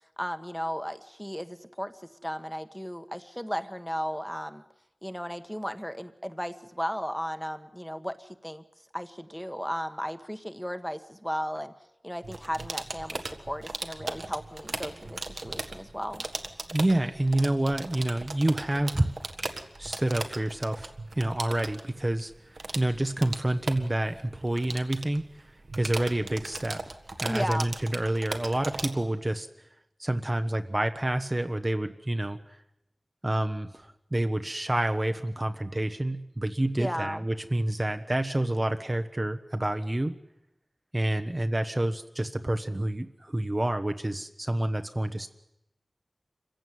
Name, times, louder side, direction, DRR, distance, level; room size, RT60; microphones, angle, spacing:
voice 1, 0.2-4.6 5.0-8.6 8.9-11.7 12.0-16.2 27.3-27.7 36.8-37.2, equal, 5° left, 9 dB, 1.4 m, -35 dB
sound 1, 12.2-28.9, right 3 dB, 75° right, 1.6 m, -38 dB
voice 2, 16.7-19.1 19.8-22.3 22.7-26.8 27.2-29.5 30.0-32.6 33.2-40.1 40.9-45.3, right 1 dB, 30° right, 7 dB, 1.1 m, -28 dB
25.5 x 16.0 x 9.3 m, 0.86 s
wide cardioid pair, 50°, 0 cm